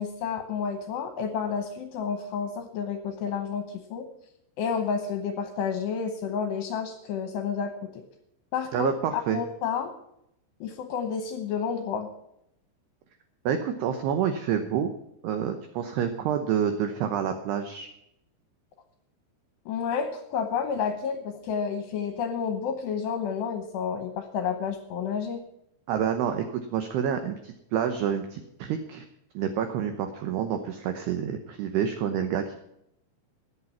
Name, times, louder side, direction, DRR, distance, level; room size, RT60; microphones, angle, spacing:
voice 1, 0.0-4.1 4.6-7.9 8.5-9.9 10.6-12.1 19.7-25.4, left 6 dB, 75° left, 7 dB, 2.6 m, -30 dB
voice 2, 8.7-9.4 13.5-14.9 15.2-17.9 25.9-29.1 29.3-32.5, right 8 dB, 85° right, 7 dB, 2.3 m, -28 dB
14.0 x 9.3 x 5.7 m, 0.79 s
omnidirectional pair, 6.0 m